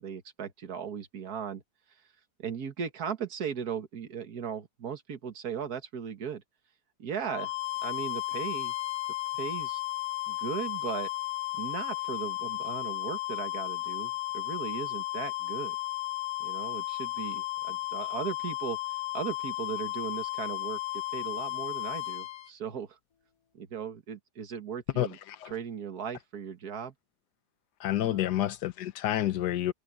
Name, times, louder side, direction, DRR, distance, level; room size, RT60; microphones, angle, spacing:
voice 1, 0.0-1.6 2.4-6.4 7.0-7.5 7.8-8.7 9.3-9.8 10.3-11.1 11.6-15.8 16.4-18.8 19.1-23.0 23.5-25.2 25.5-26.9 28.0-28.3, right 7 dB, 65° right, 2.0 m, -37 dB
sound 1, 7.2-22.5, left 18 dB, 60° left, 1.3 m, -34 dB
voice 2, 25.0-25.5 27.8-29.7, left 13 dB, 75° left, 1.5 m, -29 dB
omnidirectional pair, 1.8 m